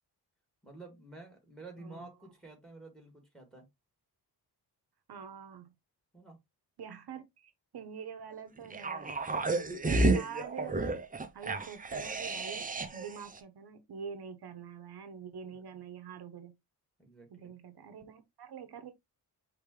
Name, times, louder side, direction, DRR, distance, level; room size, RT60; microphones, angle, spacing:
voice 1, 0.6-3.6 6.1-6.4 15.4-15.6 17.0-17.5, right 3 dB, ahead, 2.2 m, -50 dB
voice 2, 1.8-2.1 5.1-5.7 6.8-9.1 9.3-9.6 9.8-11.0 11.3-16.5 17.3-18.9, right 7 dB, 65° right, 0.9 m, -46 dB
sound 1, 8.7-13.1 13.4-13.5, right 2 dB, 20° right, 0.6 m, -31 dB
5.1 x 3.3 x 3.2 m
wide cardioid pair, 120°, 41 cm